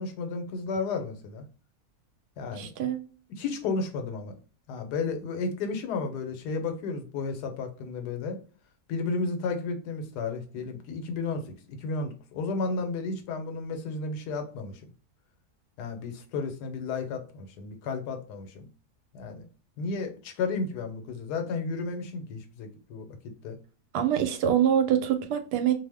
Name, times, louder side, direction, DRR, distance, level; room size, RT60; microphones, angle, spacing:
voice 1, 0.0-1.4 2.4-2.7 3.3-4.3 4.7-8.4 8.9-14.8 15.8-18.7 19.1-19.5 19.8-23.1 23.4-23.6, left 4 dB, 90° left, 1.2 m, -33 dB
voice 2, 2.5-3.0 23.9-25.7, right 9 dB, 90° right, 1.2 m, -25 dB
2.8 x 2.1 x 3.3 m
omnidirectional pair, 1.7 m